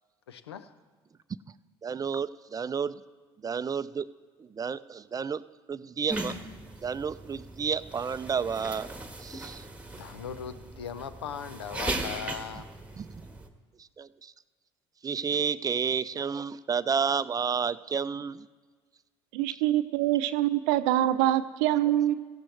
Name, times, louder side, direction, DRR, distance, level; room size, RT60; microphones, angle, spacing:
voice 1, 0.3-0.7 9.9-12.7, left 7 dB, 90° left, 13 dB, 0.6 m, -39 dB
voice 2, 1.8-3.0 3.4-4.1 4.4-5.4 5.7-6.3 6.8-8.9 9.2-9.7 13.0-13.3 13.8-14.3 15.0-18.5, right 6 dB, 30° right, 15 dB, 0.5 m, -31 dB
sound 1, 6.1-13.5, right 2 dB, 10° right, 1.5 m, -38 dB
voice 3, 19.3-22.1, right 13 dB, 70° right, 12 dB, 0.6 m, -25 dB
17.5 x 15.0 x 3.3 m, 1.5 s
hypercardioid pair, 60°, 13 cm